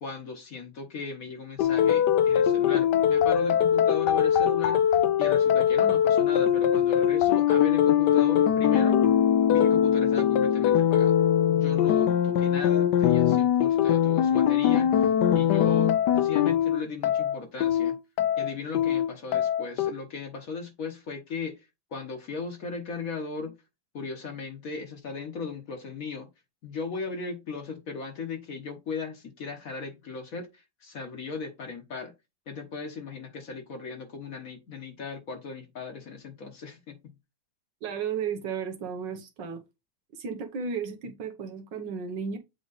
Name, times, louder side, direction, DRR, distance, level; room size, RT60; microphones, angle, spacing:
voice 1, 0.0-9.0 9.5-11.2 11.5-18.0 18.4-21.6 21.9-23.5 23.9-26.3 26.6-32.1 32.5-36.9, left 4 dB, 55° left, 1.5 m, -37 dB
sound 1, 1.6-19.9, left 9 dB, 75° left, 1.2 m, -22 dB
voice 2, 37.8-39.6 40.1-42.4, right 6 dB, 90° right, 1.7 m, -34 dB
7.6 x 3.1 x 4.0 m
omnidirectional pair, 1.9 m